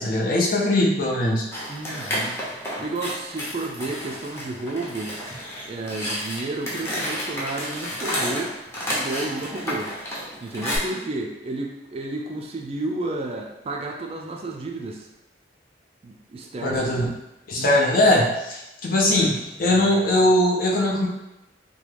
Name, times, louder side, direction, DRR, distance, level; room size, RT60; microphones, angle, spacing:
voice 1, 0.0-1.4 16.6-17.1 17.5-21.1, left 1 dB, 50° left, -2 dB, 0.6 m, -20 dB
sound 1, 1.5-10.8, equal, 15° left, 0.7 m, -31 dB
voice 2, 1.7-2.4 2.8-5.1 5.6-8.6 8.9-9.9 10.4-15.1 16.0-16.9 17.6-18.2, right 2 dB, 35° right, 1 dB, 0.3 m, -32 dB
3.0 x 2.3 x 3.2 m, 0.92 s
head